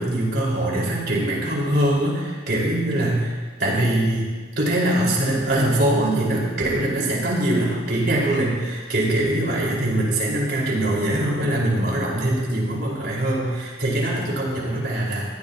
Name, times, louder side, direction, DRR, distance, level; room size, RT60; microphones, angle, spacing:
voice 1, 0.0-4.3 4.6-15.3, right 1 dB, 55° right, -4 dB, 5.1 m, -22 dB
21.0 x 16.0 x 3.0 m, 1.5 s
head